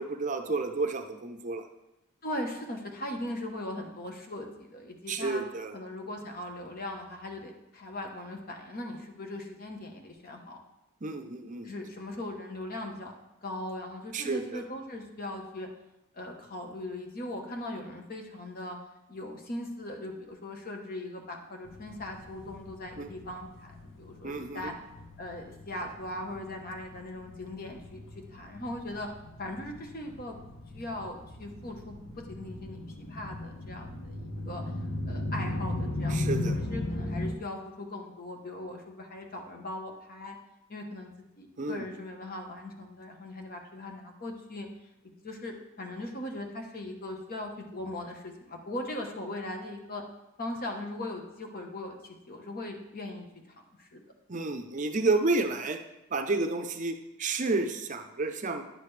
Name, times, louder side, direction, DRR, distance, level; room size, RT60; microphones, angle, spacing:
voice 1, 0.0-1.7 5.1-5.8 11.0-11.7 14.1-14.6 23.0-23.1 24.2-24.7 36.1-36.6 41.6-41.9 54.3-55.8 56.1-58.6, right 3 dB, 35° right, 6 dB, 0.6 m, -30 dB
voice 2, 2.2-5.4 5.7-10.6 11.6-15.7 16.1-18.8 19.1-24.7 25.2-29.1 29.4-30.4 30.7-32.0 32.3-34.6 35.1-40.4 40.7-41.1 41.4-44.7 45.0-50.0 50.4-53.3 53.8-54.0, left 1 dB, 45° left, 3 dB, 1.1 m, -39 dB
sound 1, 21.6-37.3, left 1 dB, 65° left, 1.4 m, -37 dB
10.5 x 6.7 x 3.3 m, 0.94 s
head